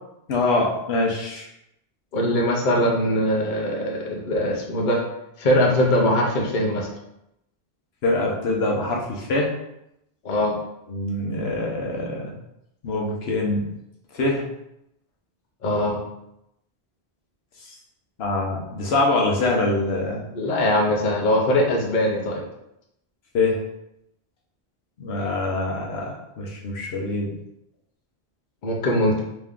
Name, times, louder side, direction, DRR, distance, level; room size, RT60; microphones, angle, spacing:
voice 1, 0.3-1.4 8.0-9.5 10.9-12.3 12.8-13.7 14.1-14.4 18.2-20.2 23.3-23.6 25.0-27.3, left 2 dB, 75° left, -2 dB, 1.1 m, -24 dB
voice 2, 2.1-5.0 5.4-6.9 10.2-10.6 15.6-16.0 20.3-22.4 28.6-29.2, left 1 dB, 50° left, -1 dB, 0.8 m, -21 dB
3.4 x 3.1 x 3.6 m, 0.82 s
omnidirectional pair, 1.1 m